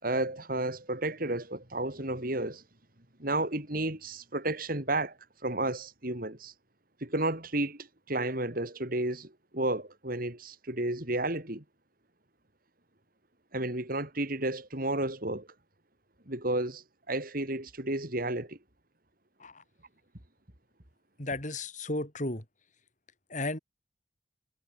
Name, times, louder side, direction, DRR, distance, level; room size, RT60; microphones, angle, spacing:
voice 1, 0.0-2.6 3.2-5.2 5.4-6.5 7.0-11.6 13.5-15.5 16.3-18.6, right 2 dB, 50° right, 3.7 m, -32 dB
voice 2, 21.2-22.4 23.3-23.6, left 2 dB, 40° left, 4.9 m, -34 dB
head